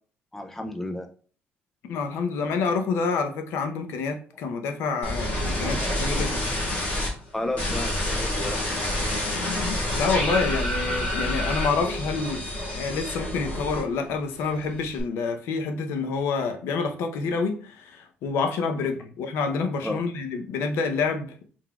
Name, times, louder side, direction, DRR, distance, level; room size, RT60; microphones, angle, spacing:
voice 1, 0.3-1.1 5.6-5.9 7.3-8.9 19.8-20.0, left 1 dB, 10° left, 0.4 m, -32 dB
voice 2, 1.9-6.5 9.9-12.4 12.7-21.5, left 4 dB, 85° left, 0.7 m, -28 dB
sound 1, 5.0-7.1 7.6-14.1 14.4-15.0, left 1 dB, 40° left, 1.7 m, -28 dB
4.4 x 3.9 x 2.3 m
cardioid pair, 160°, 4 cm